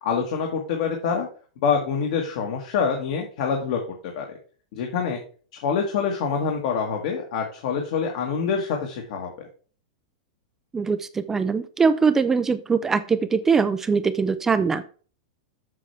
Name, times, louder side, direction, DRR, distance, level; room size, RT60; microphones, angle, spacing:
voice 1, 0.0-1.3 1.6-4.4 4.7-5.2 5.5-9.3, left 6 dB, 55° left, 2 dB, 1.6 m, -26 dB
voice 2, 10.7-14.8, right 5 dB, 10° right, 12 dB, 0.4 m, -22 dB
7.5 x 6.8 x 3.4 m, 0.40 s
supercardioid pair, 165°, 4 cm